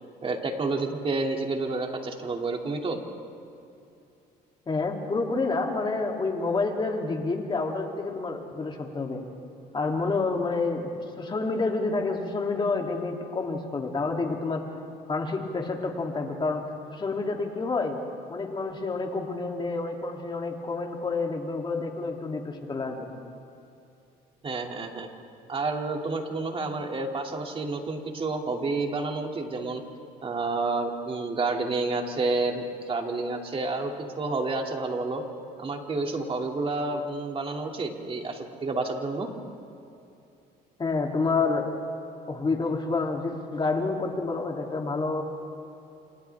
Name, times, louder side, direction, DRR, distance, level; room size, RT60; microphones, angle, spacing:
voice 1, 0.2-3.0 24.4-25.1 25.5-29.8 30.2-33.9 34.2-35.2 35.6-39.3, right 3 dB, 35° right, 2 dB, 2.6 m, -29 dB
voice 2, 4.7-9.2 9.7-10.9 11.2-14.6 15.1-16.6 16.9-18.0 18.3-23.2 40.8-41.7 42.3-45.2, left 3 dB, 30° left, 1 dB, 2.9 m, -28 dB
29.5 x 27.0 x 3.5 m, 2.7 s
cardioid pair, 110°, 17 cm